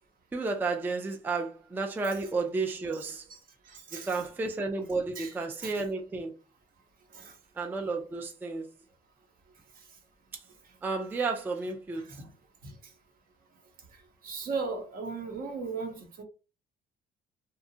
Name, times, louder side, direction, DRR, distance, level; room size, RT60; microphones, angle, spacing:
voice 1, 0.3-3.2 3.9-6.4 7.6-8.7 10.8-12.1, right 3 dB, 10° right, 0.3 m, -32 dB
voice 2, 3.6-4.3 5.2-5.3 5.6-5.8 7.1-7.4 9.7-10.0 10.6-10.8 12.0-12.3 12.6-12.9 13.9-16.2, right 4 dB, 60° right, 0.8 m, -38 dB
2.8 x 2.2 x 2.6 m
cardioid pair, 110°, 17 cm